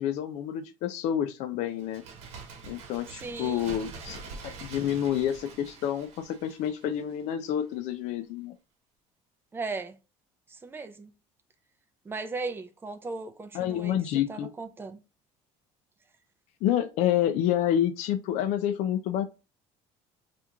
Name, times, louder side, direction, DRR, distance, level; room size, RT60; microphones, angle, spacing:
voice 1, 0.0-2.0 2.6-8.5 13.5-14.5 16.6-19.3, left 10 dB, 65° left, 0.4 m, -28 dB
Bird, 1.8-7.3 7.6-7.7, right 4 dB, 65° right, 0.9 m, -45 dB
voice 2, 3.1-3.7 9.5-10.0 10.5-11.1 12.1-14.0 14.3-15.0, right 3 dB, 15° right, 0.5 m, -37 dB
2.9 x 2.5 x 3.4 m
cardioid pair, 130°, 13 cm